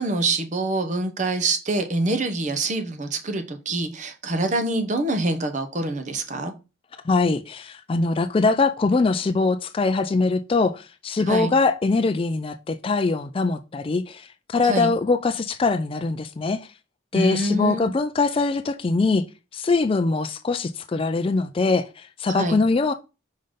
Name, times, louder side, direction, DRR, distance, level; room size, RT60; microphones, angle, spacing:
voice 1, 0.0-6.5 11.3-11.5 14.6-14.9 17.1-17.9 22.3-22.6, right 2 dB, 35° right, 0.8 m, -25 dB
voice 2, 7.0-16.7 17.1-19.2 19.5-22.9, left 3 dB, 25° left, 0.3 m, -22 dB
5.2 x 3.8 x 5.1 m
head